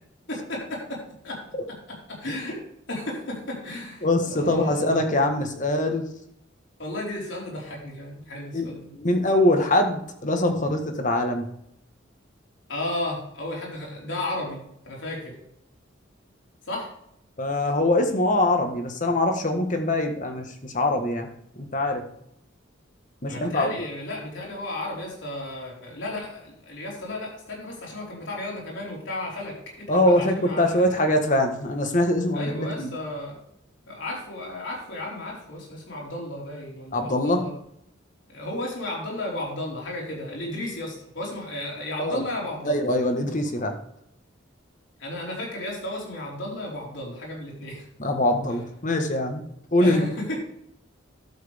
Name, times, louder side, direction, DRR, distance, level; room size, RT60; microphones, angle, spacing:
voice 1, 0.3-1.4 2.1-2.6 2.9-5.0 6.8-8.9 12.7-15.3 16.7-16.9 23.2-31.1 32.3-33.4 33.9-37.5 38.3-42.8 45.0-47.8 49.8-50.4, left 1 dB, 65° left, -3 dB, 4.5 m, -34 dB
voice 2, 4.0-6.0 8.5-11.4 17.4-21.3 21.6-22.0 23.2-23.7 29.9-32.9 36.9-37.4 42.0-42.2 42.6-43.7 48.0-49.4 49.7-50.0, left 1 dB, 40° left, 5 dB, 1.5 m, -23 dB
12.0 x 7.6 x 3.5 m, 0.72 s
head